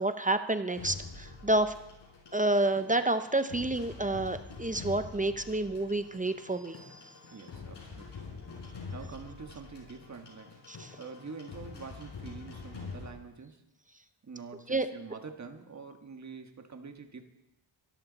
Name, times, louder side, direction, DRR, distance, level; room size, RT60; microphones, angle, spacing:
voice 1, 0.0-1.7 2.3-7.1 10.7-10.9 14.7-14.9, right 2 dB, 15° right, 10 dB, 0.6 m, -29 dB
sound 1, 0.8-13.1, left 4 dB, 60° left, 5.4 m, -46 dB
voice 2, 7.3-8.3 8.6-10.6 11.0-13.6 14.2-17.2, right 5 dB, 35° right, 6 dB, 1.5 m, -46 dB
23.5 x 12.5 x 4.1 m, 0.89 s
wide cardioid pair, 155°, 47 cm